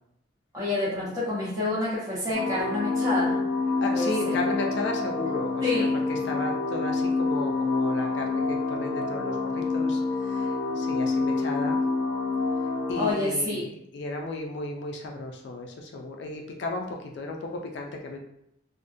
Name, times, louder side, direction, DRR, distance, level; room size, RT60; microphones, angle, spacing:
voice 1, 0.5-3.4 3.9-4.4 5.6-5.9 13.0-13.6, left 2 dB, 15° right, -7 dB, 0.8 m, -28 dB
sound 1, 2.3-13.1, left 3 dB, 60° right, 1.0 m, -27 dB
voice 2, 3.8-11.8 12.9-18.2, left 2 dB, 60° left, 1 dB, 0.4 m, -34 dB
2.4 x 2.1 x 2.5 m, 0.75 s
head